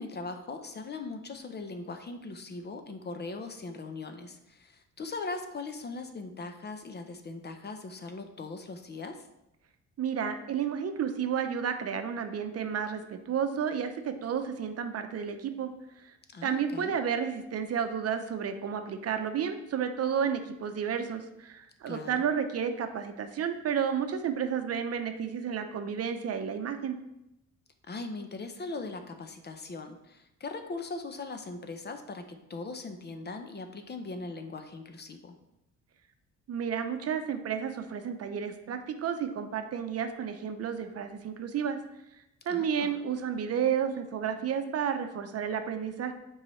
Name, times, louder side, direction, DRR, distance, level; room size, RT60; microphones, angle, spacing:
voice 1, 0.0-9.2 16.3-17.0 21.9-22.1 27.9-35.4 42.5-42.9, left 3 dB, 35° left, 7 dB, 0.7 m, -40 dB
voice 2, 10.0-15.7 16.0-16.1 16.4-27.0 36.5-41.8 42.5-46.1, right 7 dB, 55° right, 7 dB, 0.7 m, -31 dB
7.3 x 4.7 x 3.1 m, 0.87 s
cardioid pair, 90°, 30 cm